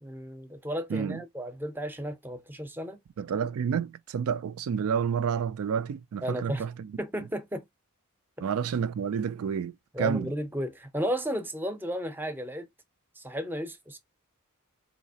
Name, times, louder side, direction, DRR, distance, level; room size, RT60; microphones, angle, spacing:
voice 1, 0.0-3.0 6.2-6.7 7.0-7.6 9.9-12.7 13.2-14.0, equal, 10° right, 0.6 m, -33 dB
voice 2, 0.9-1.2 3.2-6.9 8.4-9.7 10.0-10.3, right 7 dB, 85° right, 0.4 m, -29 dB
4.1 x 2.8 x 2.7 m
head